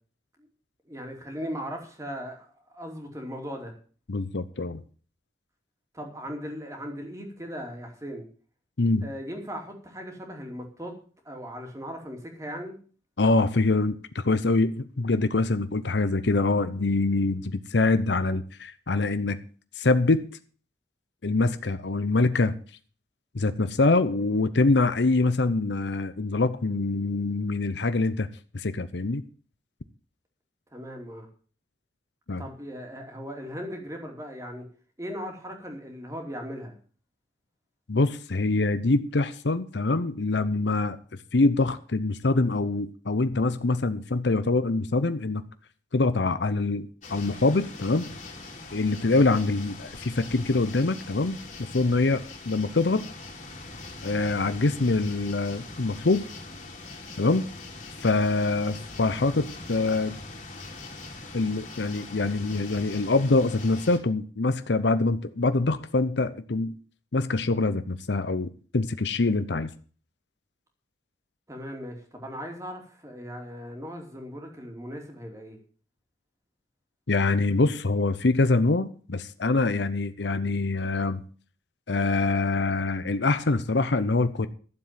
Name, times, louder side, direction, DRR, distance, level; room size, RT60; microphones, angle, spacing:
voice 1, 0.9-3.7 5.9-8.3 9.0-10.9 11.2-12.8 30.7-31.3 32.4-34.7 35.0-36.8 71.5-75.6, equal, 20° right, 2.8 m, -38 dB
voice 2, 4.1-4.8 8.8-9.1 13.2-19.4 19.8-20.3 21.2-22.6 23.3-28.3 28.5-29.2 32.3-32.5 37.9-41.0 41.3-45.4 45.9-48.1 48.7-53.0 54.0-56.3 57.2-57.5 58.0-60.2 61.3-66.8 67.1-69.7 77.1-81.2 81.9-84.5, left 3 dB, 85° left, 0.8 m, -24 dB
sound 1, 47.0-64.0, left 3 dB, 40° left, 2.9 m, -42 dB
12.5 x 7.5 x 7.5 m
head